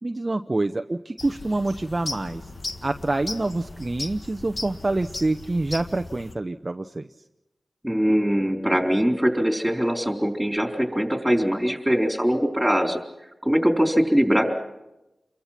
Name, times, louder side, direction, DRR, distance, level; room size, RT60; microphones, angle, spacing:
voice 1, 0.0-2.4 2.8-7.1, right 2 dB, 30° right, 7 dB, 0.8 m, -26 dB
sound 1, 1.2-6.3, left 2 dB, 45° left, 1.8 m, -37 dB
voice 2, 7.8-13.0 13.4-14.5, equal, 5° right, 5 dB, 4.1 m, -22 dB
29.0 x 23.0 x 5.9 m, 0.93 s
wide cardioid pair, 80°, 0 cm